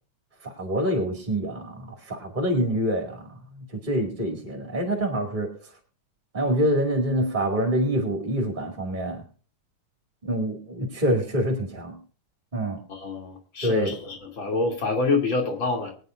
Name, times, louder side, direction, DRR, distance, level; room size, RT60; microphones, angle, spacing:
voice 1, 0.4-5.7 6.3-9.2 10.2-12.0 12.5-12.8 13.6-13.9, equal, 20° right, 2 dB, 1.8 m, -26 dB
voice 2, 12.9-15.9, left 3 dB, 40° left, 2 dB, 3.2 m, -26 dB
23.0 x 9.3 x 2.5 m, 0.39 s
omnidirectional pair, 3.3 m